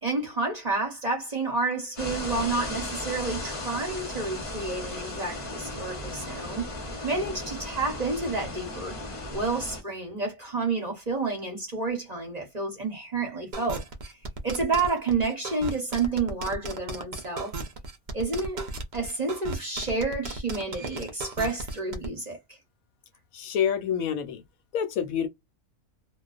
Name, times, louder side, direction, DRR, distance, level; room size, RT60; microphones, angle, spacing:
voice 1, 0.0-6.7 7.0-9.0 9.3-14.1 14.4-17.5 18.1-18.6 18.9-22.4, right 3 dB, 35° right, 0.8 m, -30 dB
sound 1, 2.0-9.8, left 2 dB, 30° left, 0.6 m, -36 dB
sound 2, 13.5-22.1, right 3 dB, 65° right, 0.4 m, -35 dB
voice 2, 23.3-24.4 24.7-25.3, left 8 dB, 75° left, 1.0 m, -27 dB
2.3 x 2.3 x 2.4 m
omnidirectional pair, 1.5 m